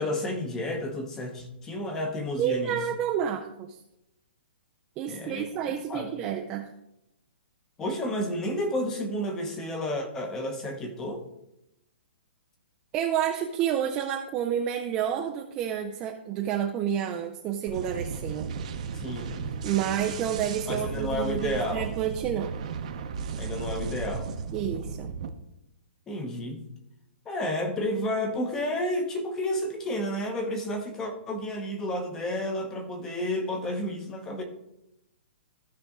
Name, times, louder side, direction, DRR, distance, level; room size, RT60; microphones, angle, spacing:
voice 1, 0.0-2.8 5.1-6.1 7.8-11.2 18.9-19.5 20.7-21.9 23.4-24.3 26.1-26.7 27.3-34.4, left 1 dB, 10° left, 5 dB, 0.8 m, -31 dB
voice 2, 2.4-3.8 5.0-6.7 12.9-18.5 19.6-22.5 24.5-25.1, right 9 dB, 10° right, 2 dB, 0.3 m, -29 dB
sound 1, 17.7-25.3, right 5 dB, 35° right, 0.7 m, -35 dB
15.0 x 5.1 x 3.6 m, 0.87 s
hypercardioid pair, 180°, 6 cm